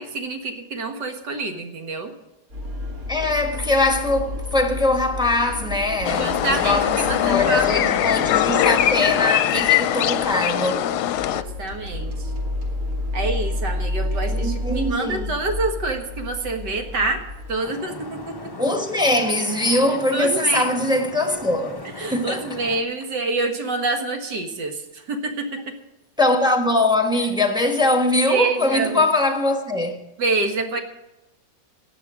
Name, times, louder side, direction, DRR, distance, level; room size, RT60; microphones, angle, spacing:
voice 1, 0.0-2.1 6.1-8.0 11.3-12.3 13.1-17.2 17.5-18.5 20.1-20.7 21.8-25.7 28.3-29.0 30.2-30.8, right 3 dB, 75° right, 2.3 m, -27 dB
sound 1, 2.5-9.2 9.6-9.9 10.2-10.3 10.8-17.5, left 1 dB, 55° right, 2.5 m, -30 dB
voice 2, 3.1-10.9 14.3-15.3 18.6-22.5 26.2-30.0, left 2 dB, 5° right, 1.1 m, -22 dB
sound 2, 6.0-11.4, left 11 dB, 70° left, 1.1 m, -21 dB
Vehicle horn car horn honking / Traffic noise roadway noise, 17.6-22.8, left 2 dB, 35° left, 0.3 m, -37 dB
16.0 x 10.5 x 5.0 m
omnidirectional pair, 1.9 m